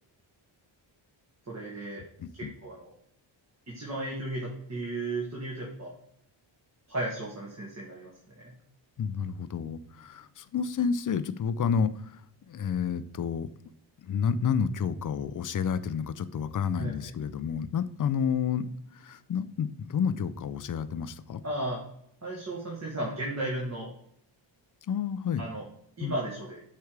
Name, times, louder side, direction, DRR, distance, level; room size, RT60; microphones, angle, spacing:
voice 1, 1.5-2.0 2.3-2.9 3.7-5.9 6.9-8.1 8.4-8.5 16.7-17.1 21.4-21.8 22.2-23.9 25.4-25.7 26.0-26.6, right 1 dB, 35° right, -4 dB, 1.9 m, -35 dB
voice 2, 2.2-2.5 9.0-12.2 12.5-13.5 14.0-18.6 18.9-21.4 24.9-25.4 26.0-26.2, left 7 dB, 40° left, 13 dB, 0.5 m, -30 dB
8.1 x 3.4 x 4.7 m, 0.71 s
cardioid pair, 95°, 48 cm